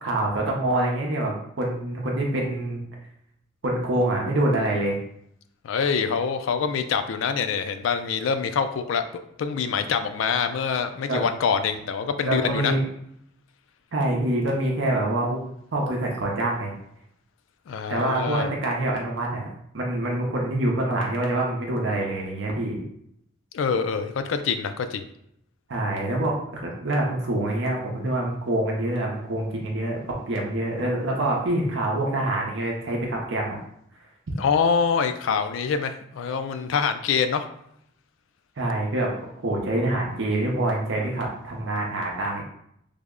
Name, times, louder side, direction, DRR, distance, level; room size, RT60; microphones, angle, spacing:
voice 1, 0.0-2.8 3.6-5.0 11.1-11.2 12.3-12.8 13.9-16.7 17.9-19.5 19.7-22.8 25.7-30.0 30.3-33.6 38.6-39.1 39.4-42.4, right 1 dB, 70° right, -1 dB, 0.6 m, -26 dB
voice 2, 5.6-9.0 9.4-12.7 17.7-18.5 23.5-25.1 34.4-37.5, left 6 dB, 75° left, 9 dB, 0.3 m, -25 dB
3.4 x 2.0 x 3.6 m, 0.73 s
head